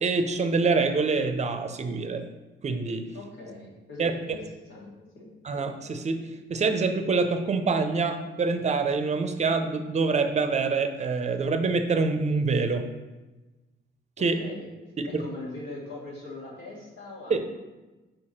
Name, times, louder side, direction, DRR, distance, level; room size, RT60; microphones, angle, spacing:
voice 1, 0.0-2.3 2.6-3.1 4.0-4.1 5.4-6.2 6.5-12.8 14.2-14.4 15.0-15.2 17.3-17.4, right 4 dB, 35° right, 8 dB, 0.6 m, -25 dB
voice 2, 3.1-5.3 14.3-14.7 15.0-17.4, left 2 dB, 65° left, -4 dB, 2.0 m, -41 dB
4.7 x 4.6 x 4.3 m, 1.1 s
cardioid pair, 90°, 20 cm